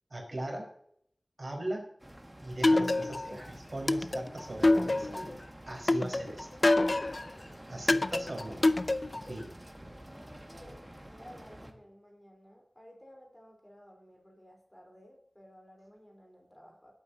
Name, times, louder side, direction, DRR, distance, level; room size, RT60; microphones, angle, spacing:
voice 1, 0.1-0.7 1.4-1.9 2.4-5.4 5.7-6.5 7.7-8.6 9.2-9.5, right 1 dB, 50° right, 0 dB, 4.7 m, -39 dB
sound 1, 2.0-11.7, right 1 dB, 15° right, 1.9 m, -49 dB
sound 2, 2.6-3.4 3.9-5.3 5.9-7.3 7.9-9.3, left 2 dB, 50° left, 0.4 m, -26 dB
voice 2, 7.2-7.6 9.8-16.9, equal, 15° left, 1 dB, 3.9 m, -55 dB
19.5 x 8.9 x 2.8 m, 0.67 s
wide cardioid pair, 65°, 0 cm